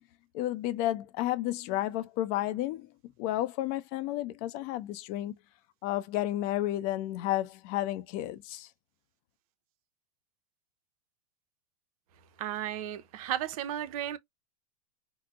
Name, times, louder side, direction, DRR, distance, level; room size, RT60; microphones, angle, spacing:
voice 1, 0.3-2.9 3.2-5.3 5.8-8.7, left 14 dB, 45° left, 0.6 m, -31 dB
voice 2, 12.4-14.2, right 11 dB, 60° right, 0.6 m, -34 dB
4.6 x 2.0 x 2.3 m
hypercardioid pair, 105°, 21 cm